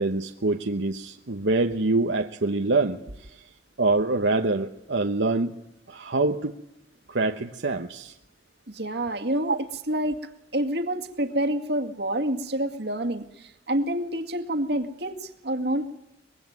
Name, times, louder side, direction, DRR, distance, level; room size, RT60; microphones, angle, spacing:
voice 1, 0.0-3.4 3.8-5.6 5.9-6.5 7.1-8.1 9.5-9.6, right 3 dB, 80° right, 5 dB, 1.1 m, -25 dB
voice 2, 8.7-9.5 9.9-10.2 10.5-15.9, right 1 dB, 65° right, 6 dB, 2.1 m, -28 dB
24.0 x 21.5 x 9.5 m, 0.84 s
head